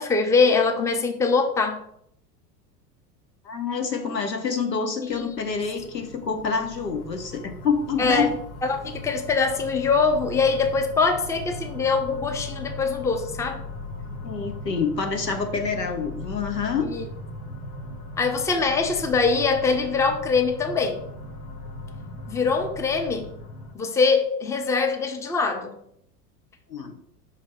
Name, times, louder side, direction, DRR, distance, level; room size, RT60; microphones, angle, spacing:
voice 1, 0.0-1.8 5.2-5.3 8.0-8.3 8.6-13.6 16.8-17.1 18.2-21.0 22.3-23.3 23.7-25.8, left 4 dB, 5° left, 0.6 m, -23 dB
voice 2, 3.4-8.3 14.2-16.9 26.7-26.9, left 5 dB, 85° left, 1.1 m, -27 dB
sound 1, 5.1-23.7, left 2 dB, 45° left, 1.7 m, -38 dB
5.3 x 3.4 x 5.6 m
figure-of-eight pair, 85°, 48 cm